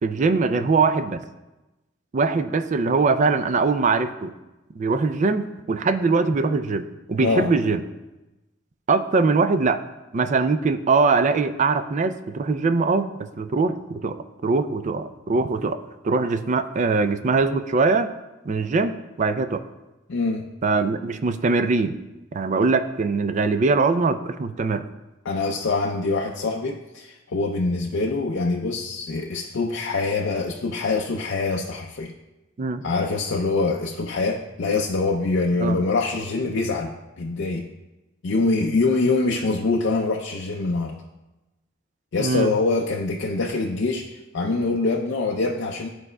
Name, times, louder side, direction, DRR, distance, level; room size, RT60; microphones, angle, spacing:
voice 1, 0.0-1.2 2.1-4.3 4.8-7.8 8.9-9.8 10.1-18.1 18.5-19.6 20.6-22.0 22.3-24.8 32.6-32.8 35.6-35.8 42.2-42.5, right 4 dB, 35° right, 10 dB, 0.3 m, -22 dB
voice 2, 7.2-7.5 20.1-20.5 25.3-32.1 32.8-37.7 38.2-41.0 42.1-45.9, left 3 dB, 60° left, 0 dB, 0.5 m, -24 dB
13.0 x 4.7 x 2.2 m, 1.0 s
head